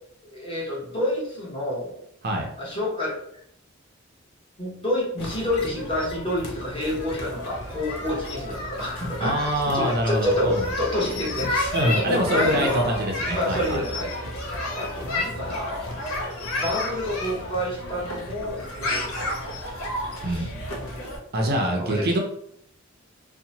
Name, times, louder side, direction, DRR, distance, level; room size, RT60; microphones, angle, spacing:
voice 1, 0.3-1.9 2.6-3.2 4.6-13.0 13.3-14.1 14.7-16.0 16.5-19.6 20.2-20.5 20.7-21.1 21.8-22.1, left 1 dB, 25° left, -5 dB, 1.0 m, -28 dB
sound 1, 5.2-21.2, left 1 dB, 85° left, 0.5 m, -32 dB
voice 2, 9.2-10.7 11.7-13.8 20.2-20.8 21.3-22.2, equal, 50° right, 2 dB, 0.5 m, -25 dB
2.7 x 2.1 x 2.8 m, 0.69 s
head